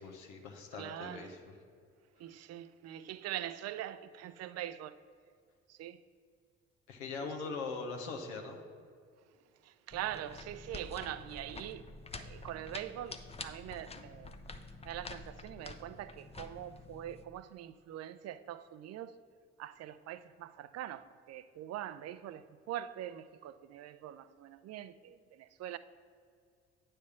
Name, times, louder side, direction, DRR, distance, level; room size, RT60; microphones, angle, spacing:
voice 1, 0.0-1.4 6.9-8.6, left 4 dB, 85° left, 0.8 m, -41 dB
voice 2, 0.8-1.4 2.2-4.9 5.7-6.0 7.2-7.6 9.6-11.8 12.1-14.3 14.8-19.2 19.6-25.8, right 12 dB, 50° right, 0.5 m, -43 dB
sound 1, 9.9-17.2, left 3 dB, 20° left, 0.6 m, -48 dB
9.1 x 3.3 x 6.8 m
hypercardioid pair, 50°, 33 cm